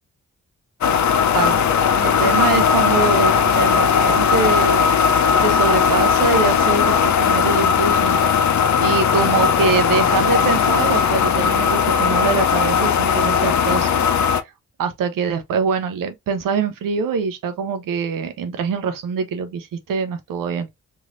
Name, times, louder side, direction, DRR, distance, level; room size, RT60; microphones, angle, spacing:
sound 1, 0.8-14.4, left 7 dB, 60° left, 0.5 m, -17 dB
voice 1, 1.3-1.6 2.0-4.9 5.4-13.9 14.8-20.7, right 5 dB, 90° right, 0.6 m, -24 dB
3.1 x 2.7 x 2.4 m
supercardioid pair, 40°, 32 cm